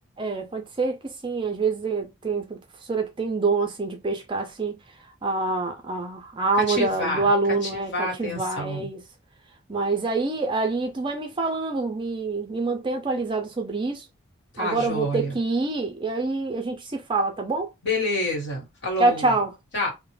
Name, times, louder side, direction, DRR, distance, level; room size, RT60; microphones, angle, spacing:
voice 1, 0.2-9.0 9.7-14.1 14.6-17.7 19.0-19.6, right 3 dB, 25° right, 0.4 m, -26 dB
voice 2, 6.7-7.3 7.9-8.9 14.5-15.3 17.8-19.2 19.7-19.9, left 1 dB, 55° left, 1.4 m, -28 dB
2.4 x 2.0 x 3.1 m
head